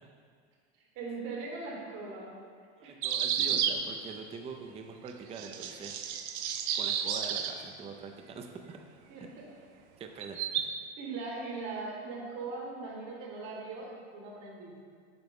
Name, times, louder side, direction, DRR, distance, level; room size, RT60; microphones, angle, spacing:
voice 1, 0.9-2.3 2.8-3.0 9.1-9.5 11.0-15.1, right 3 dB, 60° right, -2 dB, 1.6 m, -40 dB
voice 2, 2.8-6.0 6.7-8.8 10.0-10.7, right 5 dB, 20° right, 4 dB, 0.4 m, -44 dB
sound 1, 3.0-3.8 5.1-5.2 5.4-7.5 10.2-10.6, right 8 dB, 85° right, 0.6 m, -31 dB
7.8 x 4.4 x 3.6 m, 2.1 s
supercardioid pair, 110°, 33 cm